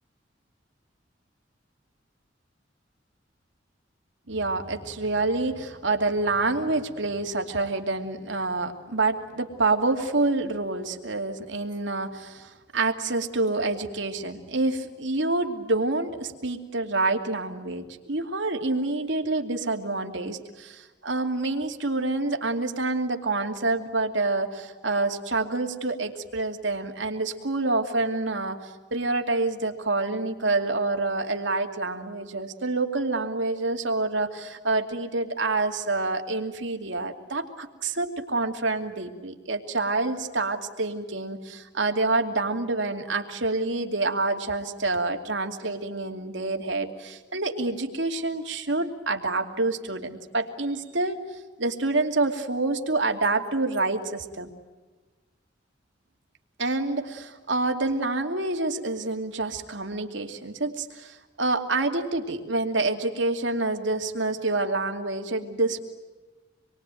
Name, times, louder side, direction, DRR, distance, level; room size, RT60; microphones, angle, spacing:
voice 1, 4.3-51.2 51.6-54.5 56.6-65.8, right 2 dB, 85° right, 4 dB, 2.7 m, -27 dB
27.0 x 23.0 x 9.2 m, 1.3 s
head